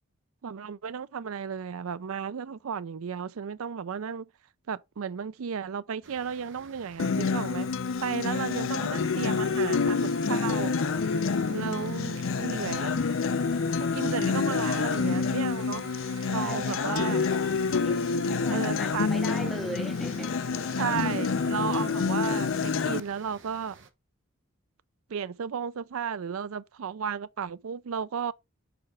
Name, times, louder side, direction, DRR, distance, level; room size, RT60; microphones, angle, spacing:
voice 1, 0.4-4.3 4.7-7.7 8.0-10.8 11.5-13.1 13.8-15.9 16.3-17.2 18.5-19.1 19.4-19.6 20.7-23.8 25.1-28.3, right 6 dB, 80° right, 0.4 m, -34 dB
sound 1, 6.0-23.9, right 4 dB, 55° right, 0.9 m, -50 dB
Acoustic guitar, 7.0-23.0, left 5 dB, 65° left, 0.5 m, -28 dB
voice 2, 16.4-20.4, equal, ahead, 0.6 m, -40 dB
6.8 x 4.3 x 3.6 m
head